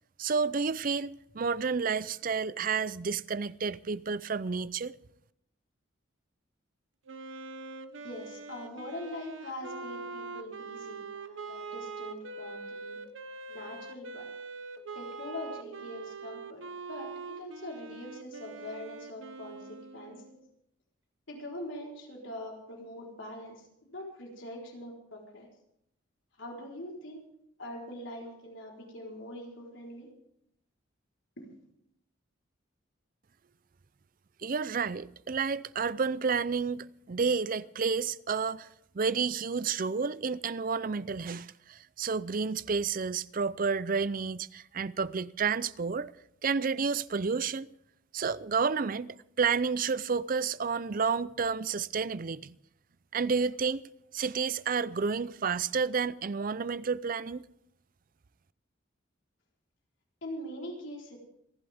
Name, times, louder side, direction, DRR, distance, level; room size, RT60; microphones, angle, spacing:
voice 1, 0.2-5.0 34.4-38.7 38.9-46.1 46.4-47.7 48.1-49.1 49.4-52.5 53.1-53.8 54.1-57.5, right 5 dB, 45° right, 0.5 m, -30 dB
Wind instrument woodwind instrument, 7.1-20.5, right 4 dB, 80° right, 1.0 m, -43 dB
voice 2, 8.0-13.0 13.5-14.3 14.9-20.2 21.3-25.5 26.4-27.2 27.6-30.1 31.4-31.6 60.2-61.2, left 1 dB, 75° left, 4.1 m, -43 dB
27.0 x 11.0 x 3.5 m
head